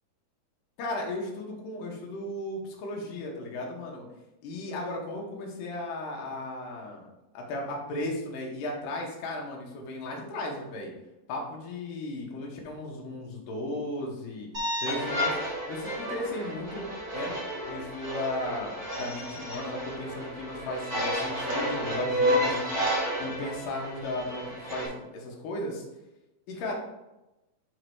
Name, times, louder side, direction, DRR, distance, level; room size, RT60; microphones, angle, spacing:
voice 1, 0.8-4.1 4.4-7.1 7.3-10.9 11.3-14.5 14.8-16.8 17.1-17.3 17.7-22.7 23.2-25.8 26.5-26.7, left 2 dB, 65° left, -1 dB, 2.7 m, -35 dB
sound 1, 14.5-24.9, equal, 30° right, 1.2 m, -31 dB
7.7 x 3.8 x 4.7 m, 0.98 s
omnidirectional pair, 4.6 m